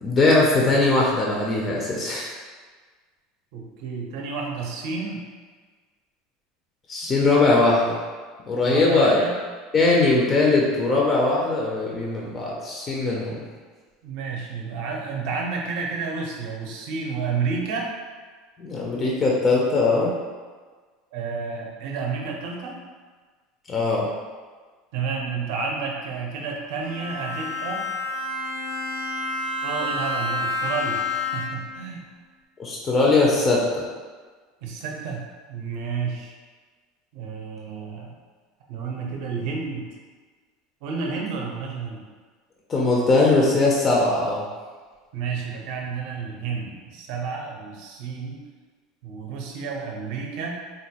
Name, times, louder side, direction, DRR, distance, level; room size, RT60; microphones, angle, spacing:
voice 1, 0.0-2.3 6.9-8.0 8.5-9.2 9.7-13.4 18.6-20.1 23.7-24.1 32.6-33.8 42.7-44.4, left 3 dB, 20° left, -3 dB, 0.3 m, -20 dB
voice 2, 3.5-5.2 8.6-9.3 14.0-17.9 21.1-22.8 24.9-27.8 29.6-32.1 34.6-35.2 35.5-36.3 37.1-38.1 38.7-39.9 40.8-42.0 45.1-48.4 49.0-50.6, right 5 dB, 55° right, -1 dB, 0.6 m, -30 dB
Bowed string instrument, 26.8-31.8, left 2 dB, 80° left, 0.4 m, -29 dB
3.8 x 2.2 x 2.8 m, 1.5 s
cardioid pair, 165°, 0 cm